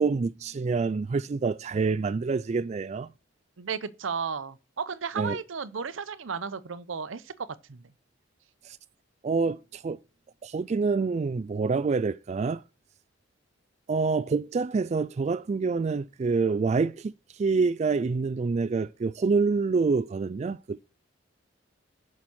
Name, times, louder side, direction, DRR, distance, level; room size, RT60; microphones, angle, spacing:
voice 1, 0.0-3.1 5.2-5.4 8.6-8.8 9.2-10.0 10.4-12.6 13.9-20.8, right 4 dB, 35° right, 0.3 m, -27 dB
voice 2, 3.6-7.9, right 5 dB, 80° right, 0.7 m, -34 dB
7.1 x 5.9 x 6.1 m
head